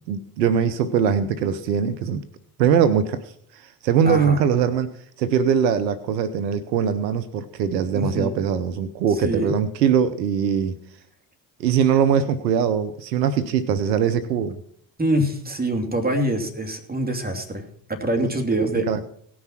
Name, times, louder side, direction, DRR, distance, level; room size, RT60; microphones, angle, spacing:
voice 1, 0.1-2.2 2.6-3.2 3.5-10.8 11.6-14.6 18.2-18.3 18.9-19.0, right 7 dB, 85° right, 12 dB, 0.7 m, -21 dB
voice 2, 4.0-4.4 7.9-8.3 9.2-9.6 15.0-19.0, right 1 dB, 20° right, 4 dB, 2.9 m, -25 dB
18.0 x 6.2 x 5.8 m, 0.65 s
hypercardioid pair, 50°, 48 cm